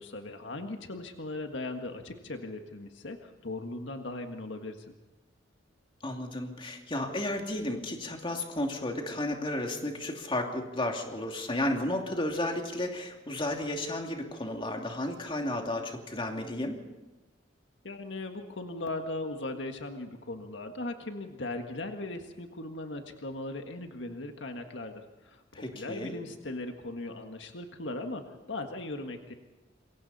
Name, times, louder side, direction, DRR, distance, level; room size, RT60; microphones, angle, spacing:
voice 1, 0.0-4.9 17.8-29.3, left 2 dB, 75° left, 5 dB, 1.7 m, -38 dB
voice 2, 6.0-16.8 25.5-26.2, left 1 dB, 30° left, 2 dB, 2.7 m, -33 dB
27.0 x 23.0 x 4.2 m, 1.1 s
head